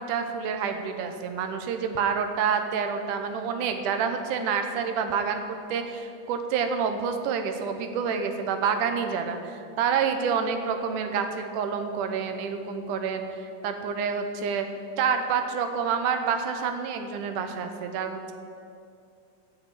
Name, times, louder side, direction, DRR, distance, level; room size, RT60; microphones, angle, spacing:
voice 1, 0.0-14.7 15.0-18.3, right 6 dB, 75° right, 7 dB, 2.3 m, -28 dB
13.5 x 6.5 x 9.2 m, 2.5 s
omnidirectional pair, 3.9 m